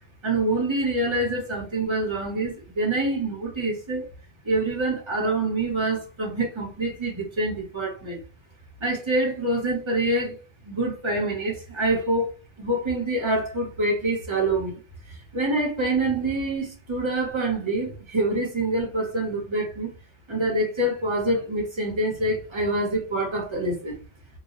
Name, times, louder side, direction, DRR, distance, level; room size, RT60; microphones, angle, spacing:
voice 1, 0.2-4.0 4.4-8.2 8.8-10.4 10.6-12.3 12.6-14.8 15.1-19.9 20.3-24.0, right 2 dB, 30° right, 1.0 m, -26 dB
2.4 x 2.1 x 2.9 m
omnidirectional pair, 1.1 m